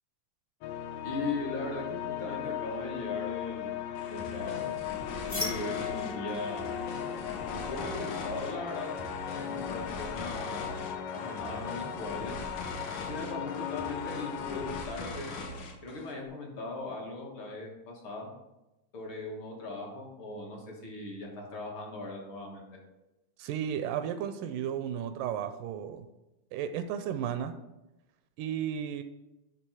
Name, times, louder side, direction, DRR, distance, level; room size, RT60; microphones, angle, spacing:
sound 1, 0.6-14.9, left 9 dB, 90° left, 2.3 m, -37 dB
voice 1, 1.0-3.8 4.1-4.8 5.3-6.7 7.5-8.9 9.3-10.8 11.1-12.4 13.0-15.3 15.8-18.3 18.9-22.7, left 2 dB, 50° left, -1 dB, 1.8 m, -39 dB
sound 2, 4.0-16.2, left 3 dB, 65° left, 2.2 m, -42 dB
sound 3, 5.3-10.8, left 2 dB, 25° left, 0.7 m, -44 dB
voice 2, 23.4-26.1 26.5-27.5 28.4-29.0, right 9 dB, 80° right, 9 dB, 2.0 m, -33 dB
10.5 x 3.5 x 4.8 m, 0.96 s
omnidirectional pair, 3.9 m